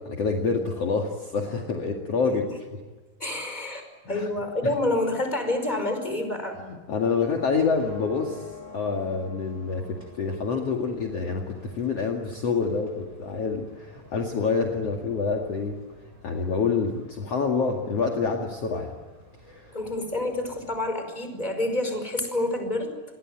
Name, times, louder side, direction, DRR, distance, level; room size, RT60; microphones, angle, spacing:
voice 1, 0.0-2.8 4.1-4.3 6.7-8.5 8.7-15.8 16.2-18.9 19.5-19.7, left 4 dB, 50° left, 1 dB, 3.0 m, -27 dB
voice 2, 3.2-6.6 19.7-22.9, left 1 dB, 10° left, 6 dB, 5.1 m, -28 dB
sound 1, 7.3-20.9, left 2 dB, 15° right, 7.8 m, -49 dB
29.0 x 22.0 x 9.1 m, 1.3 s
omnidirectional pair, 3.9 m